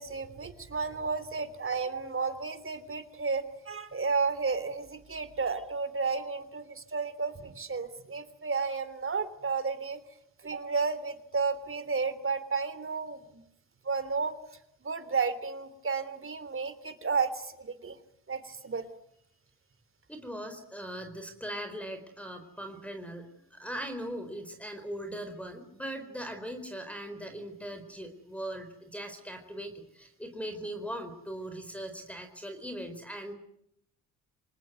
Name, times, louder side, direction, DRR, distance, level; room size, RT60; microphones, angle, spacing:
voice 1, 0.0-10.0 10.4-13.4 13.8-14.3 14.8-18.0 18.3-18.9, right 4 dB, 30° right, 13 dB, 3.4 m, -32 dB
voice 2, 20.1-33.3, right 1 dB, 5° left, 7 dB, 4.4 m, -40 dB
26.0 x 19.5 x 9.5 m, 0.75 s
supercardioid pair, 70°, 40 cm